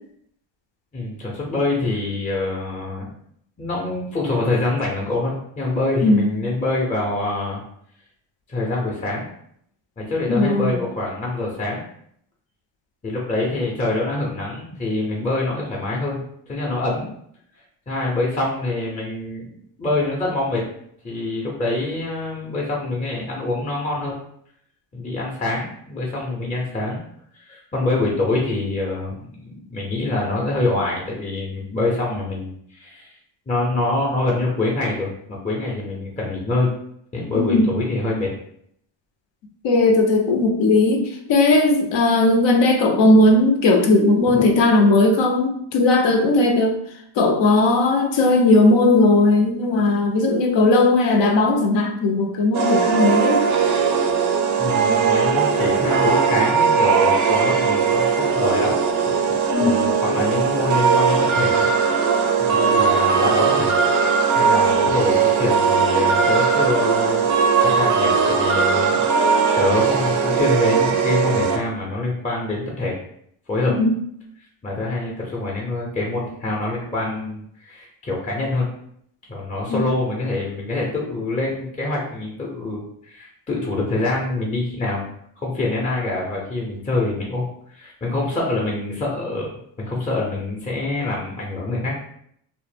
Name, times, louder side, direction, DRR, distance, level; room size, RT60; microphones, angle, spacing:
voice 1, 0.9-3.1 3.6-7.6 8.5-9.3 10.0-11.8 13.0-17.1 17.9-19.5 19.8-20.6 21.0-24.2 24.9-27.0 27.3-33.2 33.5-36.7 37.1-38.3 44.3-44.5 54.6-61.7 62.5-63.7 64.3-67.2 67.6-69.0 69.3-73.0 73.5-73.7 74.6-78.7 79.3-85.1 85.4-89.5 89.8-91.9, left 2 dB, 15° left, -2 dB, 0.6 m, -25 dB
voice 2, 6.0-6.4 10.3-10.8 37.3-37.7 39.6-46.8 47.2-53.5 59.5-59.9 73.7-73.9 79.7-79.9, left 2 dB, 65° left, 3 dB, 0.6 m, -17 dB
sound 1, 52.5-71.6, right 6 dB, 40° right, 0.4 m, -19 dB
2.0 x 2.0 x 3.2 m, 0.69 s
cardioid pair, 80°, 49 cm